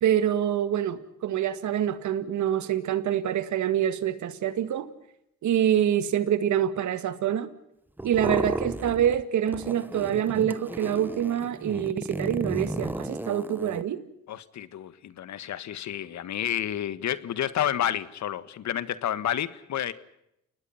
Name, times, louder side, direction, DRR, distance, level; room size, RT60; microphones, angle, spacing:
voice 1, 0.0-4.9 5.4-7.5 8.0-14.0, right 10 dB, 70° right, 2.0 m, -26 dB
squeak rubber stretch, 8.0-9.2 9.5-13.8, right 1 dB, 5° right, 1.1 m, -33 dB
voice 2, 14.3-19.9, left 10 dB, 65° left, 1.6 m, -30 dB
29.5 x 19.5 x 5.8 m
cardioid pair, 90°, 30 cm